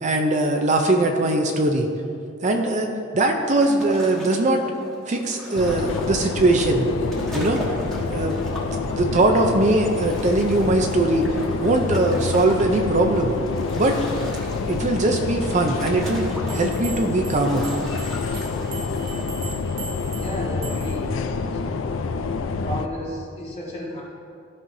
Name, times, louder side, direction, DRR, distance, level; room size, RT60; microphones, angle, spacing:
voice 1, 0.0-1.9 2.4-4.6 5.1-6.9 7.3-7.6 8.1-8.4 9.0-11.3 11.6-13.4 13.8-14.0 14.7-17.7, right 2 dB, 40° right, 4 dB, 0.5 m, -21 dB
sound 1, 3.4-19.2, equal, ahead, 1.3 m, -38 dB
sound 2, 5.6-22.9, left 4 dB, 85° left, 0.4 m, -27 dB
sound 3, 16.5-21.1, right 4 dB, 90° right, 1.3 m, -39 dB
voice 2, 20.1-21.8 22.6-24.0, equal, 35° left, -5 dB, 1.9 m, -33 dB
14.0 x 5.6 x 2.7 m, 2.6 s
head